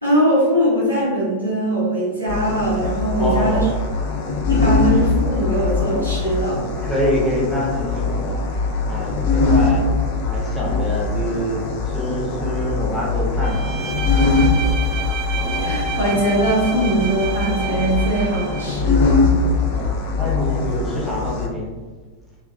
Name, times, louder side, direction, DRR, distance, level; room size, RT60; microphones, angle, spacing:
voice 1, 0.0-3.6 4.5-6.6 15.6-19.3, right 1 dB, 85° right, -9 dB, 0.7 m, -21 dB
sound 1, 2.3-21.5, left 3 dB, 45° left, 0.4 m, -22 dB
voice 2, 3.1-3.7 6.5-8.4 8.9-9.9 10.3-14.7 19.7-21.7, left 1 dB, ahead, -6 dB, 0.9 m, -26 dB
Bowed string instrument, 13.4-18.8, right 5 dB, 40° right, 0.3 m, -30 dB
2.7 x 2.4 x 2.5 m, 1.4 s
figure-of-eight pair, 90°, 0 cm